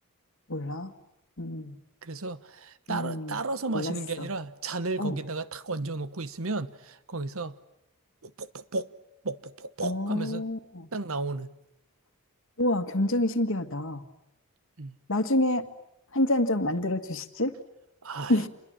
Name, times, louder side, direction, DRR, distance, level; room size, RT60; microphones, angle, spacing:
voice 1, 0.5-0.9 1.4-1.8 2.9-3.4 3.7-4.3 5.0-5.2 9.8-10.9 12.6-14.1 15.1-15.7 16.1-17.5 18.3-18.5, left 1 dB, 60° left, 1.8 m, -28 dB
voice 2, 2.0-7.5 8.2-8.9 9.2-10.5 10.9-11.5 14.8-15.0 18.0-18.4, right 3 dB, 65° right, 1.1 m, -33 dB
28.0 x 22.0 x 8.8 m
head